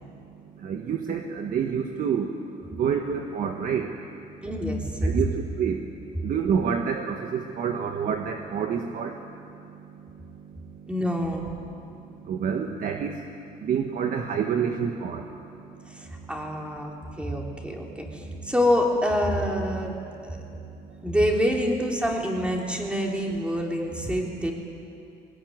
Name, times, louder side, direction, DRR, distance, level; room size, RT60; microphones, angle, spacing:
voice 1, 0.6-2.3 2.8-3.9 5.0-5.8 6.2-9.2 12.2-13.2 13.6-15.3, right 7 dB, 55° right, 4 dB, 1.4 m, -27 dB
voice 2, 4.4-5.2 10.9-11.5 15.9-19.9 20.2-20.4 21.0-24.5, equal, 5° right, 0 dB, 3.8 m, -26 dB
20.5 x 19.5 x 9.6 m, 2.6 s
cardioid pair, 110°, 17 cm